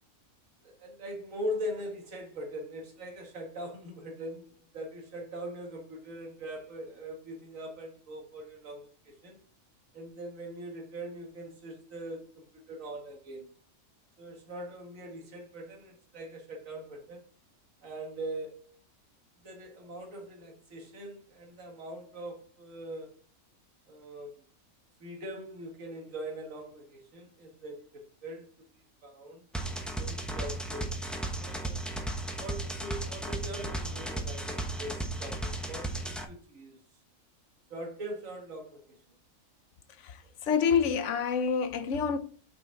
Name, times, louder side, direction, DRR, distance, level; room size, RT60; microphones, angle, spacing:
voice 1, 0.6-9.4 9.9-13.5 14.2-17.2 17.8-18.8 19.4-23.2 23.9-24.4 25.0-28.7 29.0-29.4 30.0-30.9 31.4-31.8 32.4-36.8 37.7-39.0, right 1 dB, 65° right, 2.0 m, -41 dB
sound 1, 29.5-36.2, right 1 dB, ahead, 0.7 m, -35 dB
voice 2, 40.0-42.2, left 6 dB, 65° left, 1.0 m, -28 dB
5.9 x 5.1 x 3.8 m
omnidirectional pair, 1.5 m